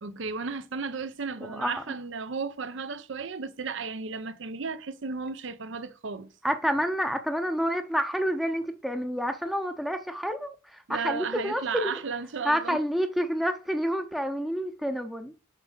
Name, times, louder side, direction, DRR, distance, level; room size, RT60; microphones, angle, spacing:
voice 1, 0.0-6.3 10.9-12.8, right 5 dB, 70° right, 0.7 m, -34 dB
voice 2, 1.5-1.8 6.4-12.0 12.4-15.3, equal, ahead, 0.6 m, -29 dB
7.5 x 5.1 x 6.6 m
head